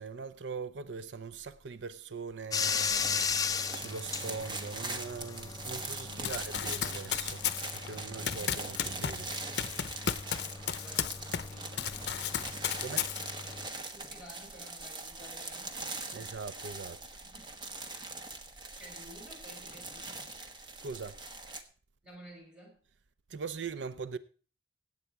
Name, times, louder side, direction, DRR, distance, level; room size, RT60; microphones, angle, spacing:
voice 1, 0.0-9.6 12.8-13.1 16.1-17.0 20.8-21.2 23.3-24.2, right 5 dB, 90° right, 0.6 m, -42 dB
Bathtub (filling or washing), 2.5-13.7, left 6 dB, 20° left, 0.6 m, -38 dB
sound 1, 2.6-21.6, right 2 dB, 25° right, 1.2 m, -42 dB
voice 2, 6.0-6.5 8.1-8.5 10.2-12.0 13.7-15.9 17.2-17.6 17.9-18.1 18.8-20.3 22.0-22.8, equal, 5° right, 6.1 m, -54 dB
Run, 6.2-11.5 11.8-13.5, left 9 dB, 65° left, 0.7 m, -34 dB
17.0 x 8.4 x 4.7 m
head